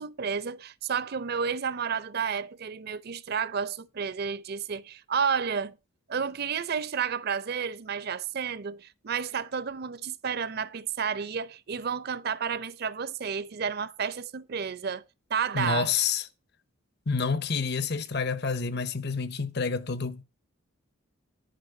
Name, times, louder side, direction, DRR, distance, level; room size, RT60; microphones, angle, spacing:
voice 1, 0.0-5.8 6.1-15.0 15.3-15.9, right 6 dB, 50° right, 0.5 m, -31 dB
voice 2, 15.5-16.3 17.1-20.2, left 5 dB, 50° left, 0.8 m, -28 dB
10.5 x 4.4 x 7.8 m
head